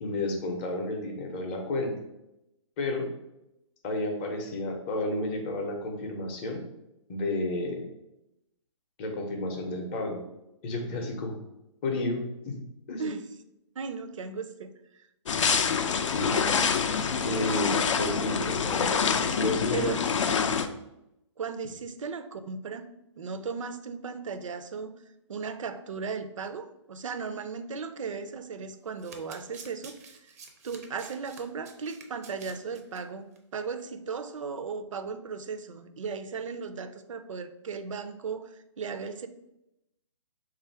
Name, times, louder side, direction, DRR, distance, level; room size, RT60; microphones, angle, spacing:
voice 1, 0.0-1.9 2.8-3.0 3.8-6.6 7.1-7.8 9.0-10.2 10.6-11.4 11.8-12.6 12.9-13.1 16.1-16.4 17.2-18.9 19.4-19.9, left 2 dB, 20° left, 2 dB, 0.5 m, -31 dB
voice 2, 13.8-15.1 19.7-20.0 21.4-22.9 23.1-24.9 25.3-30.3 30.6-39.3, right 5 dB, 90° right, 10 dB, 0.5 m, -36 dB
sound 1, 15.3-20.7, left 6 dB, 75° left, 0.4 m, -26 dB
Domestic sounds home sounds, 28.9-33.0 33.3-33.5 33.8-33.9, right 5 dB, 30° right, 0.4 m, -49 dB
3.4 x 2.4 x 4.4 m, 0.87 s
hypercardioid pair, 160°, 16 cm